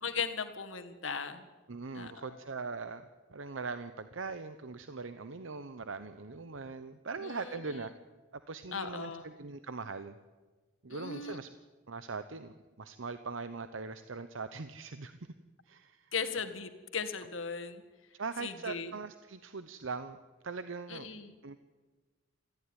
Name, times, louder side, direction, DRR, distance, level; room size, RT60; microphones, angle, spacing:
voice 1, 0.0-1.4 1.9-2.4 7.2-7.8 8.7-9.3 10.9-11.4 16.1-17.8 18.4-18.9 20.9-21.4, left 5 dB, 90° left, 9 dB, 1.8 m, -38 dB
voice 2, 1.7-7.9 8.3-10.2 10.8-11.5 11.9-15.2 15.7-16.1 18.2-20.2 20.4-21.1 21.4-21.6, right 4 dB, 80° right, 11 dB, 0.9 m, -41 dB
21.5 x 14.5 x 9.9 m, 1.3 s
head